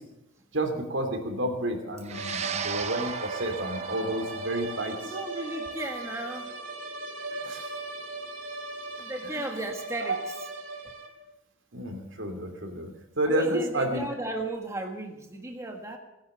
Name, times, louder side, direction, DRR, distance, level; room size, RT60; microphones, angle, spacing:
voice 1, 0.5-5.1 7.4-7.7 10.1-10.2 11.7-12.9 13.2-14.0, right 1 dB, 70° right, 4 dB, 3.0 m, -30 dB
sound 1, 2.0-10.6, right 6 dB, 35° right, 0.6 m, -39 dB
sound 2, 2.1-11.3, right 2 dB, 85° right, 2.4 m, -38 dB
voice 2, 5.0-6.5 9.0-10.5 13.3-16.0, right 2 dB, 15° right, 2 dB, 1.4 m, -35 dB
18.0 x 10.5 x 6.8 m, 0.95 s
head